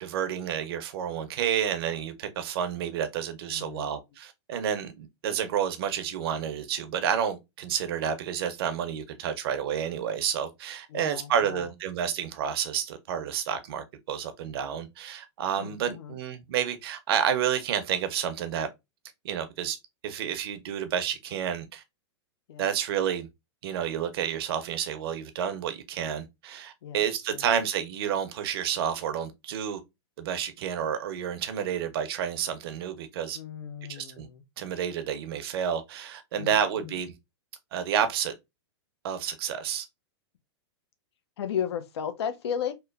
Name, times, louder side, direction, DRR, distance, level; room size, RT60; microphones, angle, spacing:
voice 1, 0.0-18.7 19.2-19.8 20.0-21.8 22.6-23.3 23.6-29.8 30.2-33.4 33.9-34.3 34.6-37.1 37.7-38.3 39.0-39.9, right 8 dB, 60° right, 0.6 m, -30 dB
voice 2, 3.5-3.9 10.9-11.7 15.5-16.2 22.5-22.7 26.8-27.0 27.3-27.5 33.3-34.4 36.4-36.9 41.4-42.7, left 8 dB, 75° left, 0.5 m, -35 dB
2.9 x 2.0 x 2.2 m
hypercardioid pair, 130°, 14 cm